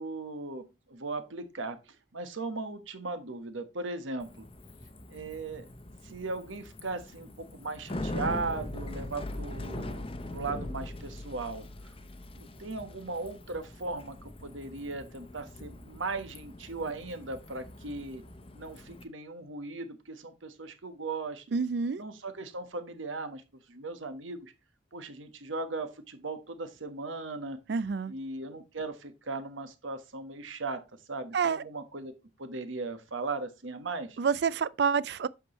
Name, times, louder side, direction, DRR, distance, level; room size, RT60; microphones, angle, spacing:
voice 1, 0.0-1.8 2.1-4.5 5.1-5.7 6.0-11.9 12.4-18.2 18.5-21.4 22.0-23.4 23.7-24.5 24.9-27.6 28.1-30.8 31.1-32.1 32.4-34.2, right 3 dB, 90° right, 1.3 m, -38 dB
Bicycle, 4.2-19.0, left 1 dB, 30° left, 0.8 m, -42 dB
voice 2, 21.5-22.0 27.7-28.1 31.3-31.6 34.2-35.3, right 6 dB, 60° right, 0.4 m, -28 dB
8.3 x 6.2 x 3.1 m
head